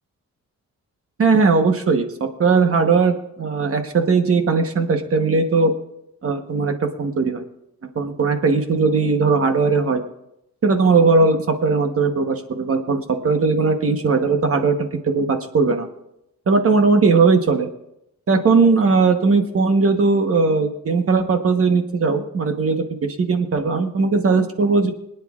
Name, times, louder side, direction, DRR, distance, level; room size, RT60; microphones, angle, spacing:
voice 1, 1.2-5.7 6.2-7.4 7.9-10.0 10.6-15.9 16.5-17.7 18.3-24.9, right 4 dB, 50° right, 5 dB, 1.1 m, -18 dB
25.0 x 9.2 x 2.4 m, 0.83 s
wide cardioid pair, 155°, 29 cm